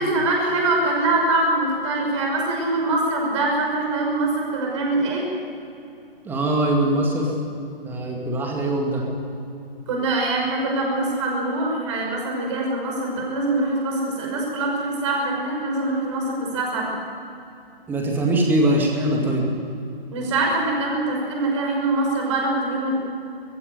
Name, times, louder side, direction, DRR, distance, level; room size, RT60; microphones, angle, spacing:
voice 1, 0.0-5.3 9.9-16.9 20.1-22.9, right 2 dB, 30° right, -1 dB, 5.8 m, -23 dB
voice 2, 6.2-7.3 7.8-9.0 17.9-19.5, right 1 dB, 5° right, 0 dB, 2.2 m, -22 dB
21.5 x 15.5 x 9.5 m, 2.7 s
figure-of-eight pair, 140°, 30 cm